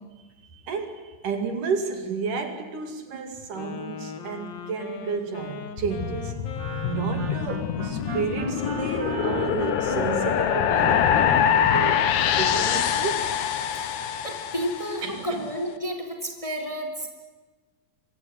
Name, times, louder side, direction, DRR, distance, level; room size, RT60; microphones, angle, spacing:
voice 1, 0.5-6.4 6.8-13.3 15.0-15.4, right 5 dB, 65° right, 3.8 m, -31 dB
Wind instrument woodwind instrument, 3.5-12.2, left 6 dB, 85° left, 4.1 m, -40 dB
sound 1, 5.8-15.1, left 9 dB, 65° left, 2.4 m, -25 dB
Wind instrument woodwind instrument 2, 6.5-12.3, right 8 dB, 85° right, 1.0 m, -37 dB
voice 2, 14.2-17.1, equal, 10° left, 3.4 m, -31 dB
25.5 x 23.5 x 9.6 m
omnidirectional pair, 4.0 m